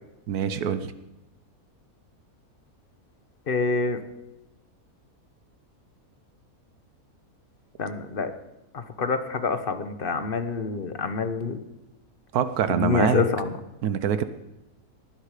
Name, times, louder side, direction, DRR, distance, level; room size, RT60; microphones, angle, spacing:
voice 1, 0.3-0.9 12.3-13.2 13.8-14.2, right 8 dB, 80° right, 11 dB, 1.3 m, -25 dB
voice 2, 3.5-4.0 7.8-8.3 8.7-11.6 12.7-13.5, left 4 dB, 40° left, 10 dB, 1.1 m, -26 dB
18.5 x 10.5 x 5.0 m, 0.96 s
omnidirectional pair, 1.6 m